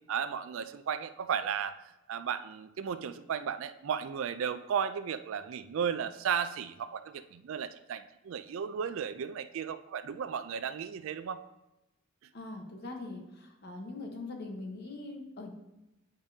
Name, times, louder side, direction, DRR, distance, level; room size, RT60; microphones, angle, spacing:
voice 1, 0.1-1.8 2.1-11.4, right 7 dB, 65° right, 12 dB, 0.3 m, -34 dB
voice 2, 12.3-15.5, left 2 dB, 50° left, 2 dB, 1.0 m, -42 dB
8.6 x 5.2 x 2.7 m, 0.96 s
head